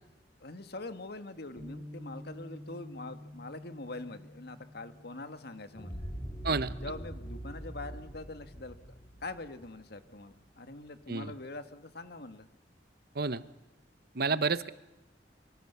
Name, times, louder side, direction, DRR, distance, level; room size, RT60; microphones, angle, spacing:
voice 1, 0.4-6.1 6.8-8.8 9.2-12.5 14.3-14.4, left 2 dB, 65° left, 9 dB, 1.8 m, -43 dB
Bass guitar, 1.6-7.8, left 1 dB, 40° right, 2.7 m, -50 dB
sound 1, 5.7-10.5, right 1 dB, 25° left, 3.8 m, -42 dB
voice 2, 14.1-14.7, right 4 dB, 60° right, 14 dB, 1.1 m, -30 dB
26.5 x 24.5 x 7.0 m, 1.0 s
head